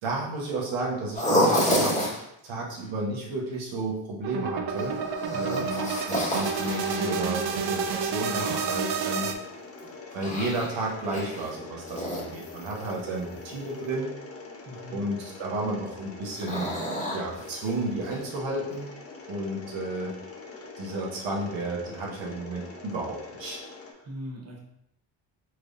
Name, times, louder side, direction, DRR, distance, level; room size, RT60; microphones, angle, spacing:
voice 1, 0.0-2.1 2.4-5.0 5.3-9.3 10.1-14.1 14.9-16.7 17.1-18.9 19.3-20.1 20.8-23.6, right 2 dB, 80° right, -3 dB, 1.1 m, -32 dB
sound 1, 1.1-2.2 4.8-7.2 8.3-9.3 9.8-11.5 11.8-12.9 16.4-17.7 18.1-18.2 18.7-18.8, equal, 15° left, 1.4 m, -29 dB
sound 2, 4.2-9.3, right 6 dB, 60° right, 0.5 m, -30 dB
voice 2, 5.3-5.7 14.6-15.1 24.0-24.6, equal, 35° right, -1 dB, 1.0 m, -40 dB
Mechanisms, 5.4-23.9, left 3 dB, 30° left, 0.7 m, -44 dB
4.5 x 3.3 x 2.5 m, 0.80 s
cardioid pair, 85°, 45 cm